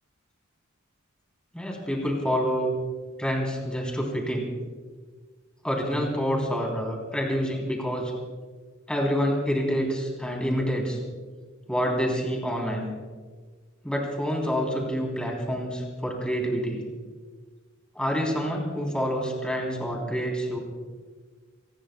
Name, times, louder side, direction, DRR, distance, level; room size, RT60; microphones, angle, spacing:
voice 1, 1.5-2.7 3.2-4.5 5.6-8.1 8.9-11.0 11.7-12.9 13.8-16.8 17.9-20.6, equal, 5° left, -1 dB, 3.4 m, -27 dB
27.5 x 20.0 x 2.3 m, 1.5 s
head